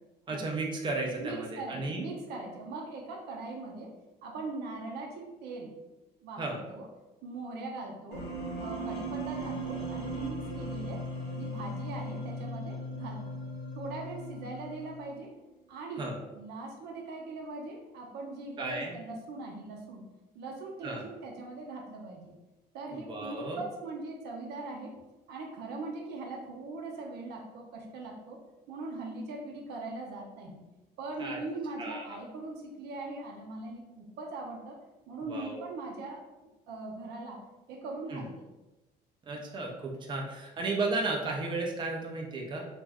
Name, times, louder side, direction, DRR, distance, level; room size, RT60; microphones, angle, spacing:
voice 1, 0.3-2.0 6.4-6.6 16.0-16.2 18.6-19.0 20.8-21.0 22.9-23.6 31.2-31.4 31.8-32.2 35.3-35.6 38.1-38.3 39.2-42.7, right 3 dB, 30° right, 0 dB, 0.5 m, -34 dB
voice 2, 1.2-5.7 6.2-6.9 7.2-8.3 8.6-11.1 11.3-13.4 13.7-15.3 15.7-20.1 20.3-22.3 22.7-25.0 25.3-28.4 28.7-30.6 31.0-34.8 35.1-36.2 36.7-37.4 37.7-38.4, right 2 dB, 80° right, 0 dB, 0.6 m, -40 dB
sound 1, 8.1-15.1, right 1 dB, 75° left, 0.9 m, -38 dB
2.5 x 2.1 x 3.5 m, 1.1 s
cardioid pair, 110°, 17 cm